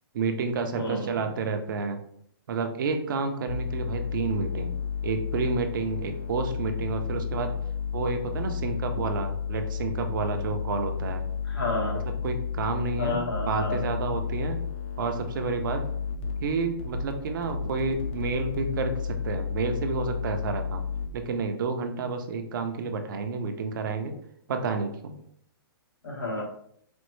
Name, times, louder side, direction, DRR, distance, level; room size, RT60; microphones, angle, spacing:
voice 1, 0.1-2.0 2.5-4.8 5.0-7.5 7.9-11.2 12.2-14.6 15.0-15.9 16.4-20.8 21.1-24.1 24.5-25.2, right 4 dB, 55° right, 6 dB, 0.5 m, -30 dB
voice 2, 0.7-1.2 11.4-12.1 13.0-13.9 26.0-26.4, left 2 dB, 90° left, -3 dB, 1.5 m, -31 dB
sound 1, 3.5-21.1, left 6 dB, 30° left, 0.4 m, -32 dB
4.2 x 2.0 x 3.0 m, 0.67 s
hypercardioid pair, 160°, 13 cm